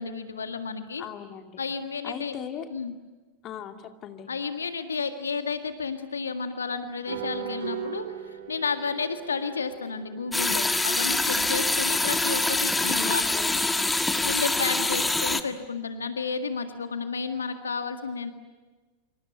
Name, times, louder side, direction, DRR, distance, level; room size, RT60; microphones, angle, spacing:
voice 1, 0.0-1.0 1.6-2.4 2.7-2.9 4.3-13.2 14.2-18.3, left 5 dB, 70° left, 8 dB, 1.8 m, -32 dB
voice 2, 1.0-1.6 2.0-2.7 3.4-4.3 13.0-13.7, left 9 dB, 35° left, 6 dB, 2.6 m, -39 dB
sound 1, 7.1-11.8, right 10 dB, 60° right, 3.5 m, -39 dB
sound 2, 10.3-15.4, left 2 dB, 5° left, 1.7 m, -25 dB
27.5 x 26.0 x 8.3 m, 1.3 s
figure-of-eight pair, 90°, 0 cm